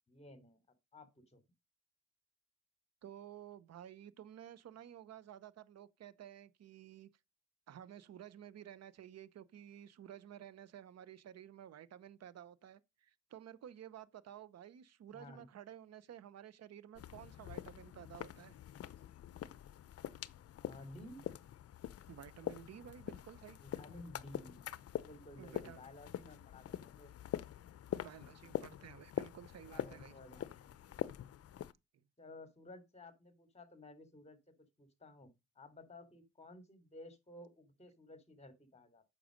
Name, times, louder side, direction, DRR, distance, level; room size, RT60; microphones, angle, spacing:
voice 1, 0.1-0.6 0.9-1.4 15.1-15.5 20.6-21.2 23.6-24.7 25.0-27.1 29.6-30.7 32.2-34.4 34.8-39.0, left 1 dB, 20° left, 3.2 m, -55 dB
voice 2, 3.0-7.1 7.7-18.5 22.1-23.6 25.4-25.8 27.9-30.1, right 10 dB, 55° right, 0.9 m, -53 dB
sound 1, 16.9-31.7, left 11 dB, 50° left, 0.7 m, -45 dB
8.9 x 6.5 x 5.2 m
cardioid pair, 90°, 30 cm